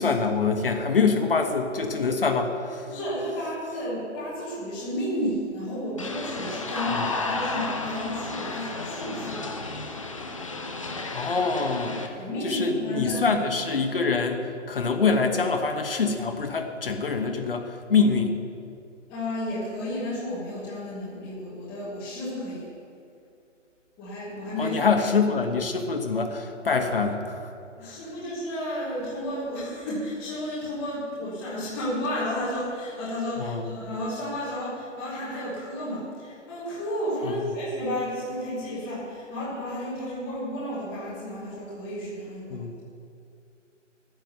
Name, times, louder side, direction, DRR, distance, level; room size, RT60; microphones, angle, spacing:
voice 1, 0.0-2.9 6.9-7.1 11.1-12.0 12.4-18.4 24.6-27.5 27.8-28.0 33.4-33.7 37.2-37.3 42.5-42.7, left 4 dB, 50° left, 4 dB, 1.2 m, -25 dB
voice 2, 2.9-9.5 12.2-13.3 19.1-22.7 24.0-24.9 27.8-42.7, equal, 5° left, -9 dB, 1.2 m, -32 dB
sound 1, 6.0-12.1, left 3 dB, 25° left, 0.7 m, -32 dB
11.5 x 9.2 x 6.6 m, 2.4 s
hypercardioid pair, 175°, 37 cm